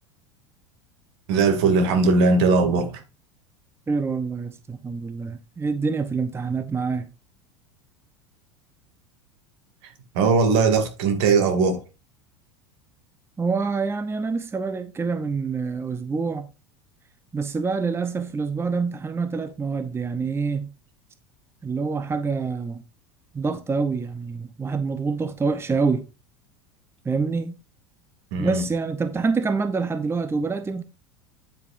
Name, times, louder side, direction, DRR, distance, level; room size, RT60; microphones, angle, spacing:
voice 1, 1.3-3.0 10.1-11.8 28.3-28.6, right 4 dB, 65° right, 2.6 m, -19 dB
voice 2, 3.9-7.1 13.4-16.5 17.3-20.7 21.6-22.8 23.3-26.0 27.0-27.6 28.4-30.8, right 4 dB, 15° right, 0.8 m, -26 dB
9.4 x 8.2 x 2.6 m
hypercardioid pair, 80°, 15 cm